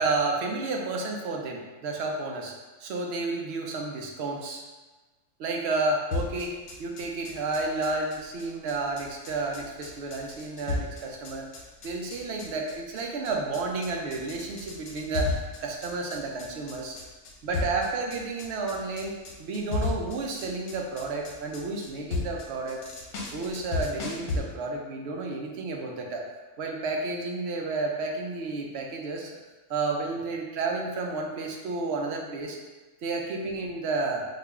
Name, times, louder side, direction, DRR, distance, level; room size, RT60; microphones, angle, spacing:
voice 1, 0.0-2.5 2.8-4.6 5.4-6.5 6.8-11.5 11.8-15.3 15.6-17.0 17.4-19.1 19.4-22.8 23.3-26.2 26.6-29.3 29.7-32.6 33.0-34.3, right 3 dB, 65° right, 1 dB, 0.7 m, -31 dB
sound 1, 6.1-24.4, left 3 dB, 90° left, 1.2 m, -34 dB
3.4 x 2.4 x 3.4 m, 1.2 s
omnidirectional pair, 1.4 m